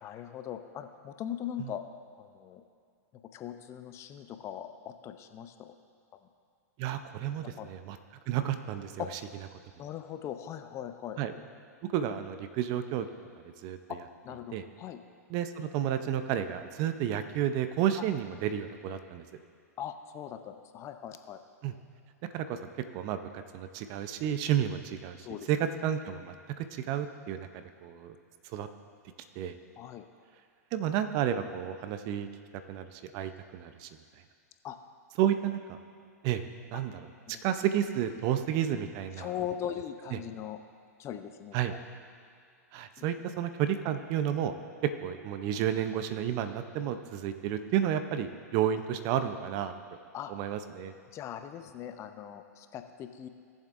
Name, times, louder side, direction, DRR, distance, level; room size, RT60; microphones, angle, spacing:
voice 1, 0.0-1.8 2.2-2.6 3.3-5.7 7.4-7.7 9.0-9.1 9.8-11.2 13.9-14.0 14.2-15.0 19.8-21.4 25.2-25.5 29.8-30.0 34.6-34.8 37.3-37.4 39.2-40.6 41.0-41.8 50.1-50.3 51.1-53.3, left 10 dB, 30° left, 8 dB, 0.6 m, -40 dB
voice 2, 6.8-8.0 8.3-9.0 11.2-11.3 11.9-13.1 13.6-13.8 14.5-14.6 15.3-19.2 21.6-21.7 22.3-22.6 22.9-28.2 28.5-28.7 29.4-29.6 30.7-32.3 32.7-33.9 35.2-35.8 36.2-36.4 36.7-37.0 37.4-39.3 40.1-40.2 41.5-41.7 42.7-44.5 44.8-49.7 50.3-50.9, right 10 dB, 45° right, 9 dB, 0.7 m, -31 dB
18.0 x 7.3 x 2.6 m, 2.3 s
hypercardioid pair, 105°, 9 cm